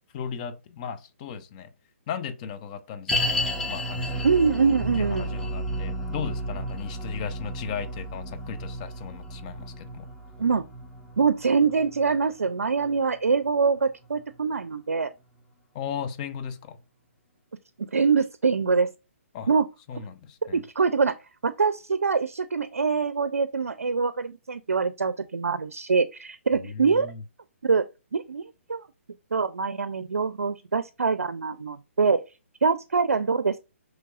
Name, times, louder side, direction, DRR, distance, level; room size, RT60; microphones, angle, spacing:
voice 1, 0.1-1.7 2.1-4.3 5.0-10.1 15.7-16.8 19.3-19.5 19.9-20.6 26.5-27.2, left 7 dB, 35° left, 0.6 m, -36 dB
sound 1, 3.1-14.4 14.6-14.7 15.4-15.5, equal, 5° left, 0.9 m, -33 dB
voice 2, 4.2-5.3 10.4-10.7 11.2-15.1 17.9-18.9 19.5-19.7 20.5-21.2 21.4-27.1 27.6-27.9 28.1-28.4 28.7-28.9 29.3-32.2 32.6-33.6, right 5 dB, 85° right, 0.4 m, -24 dB
5.9 x 3.2 x 2.4 m
hypercardioid pair, 140°, 8 cm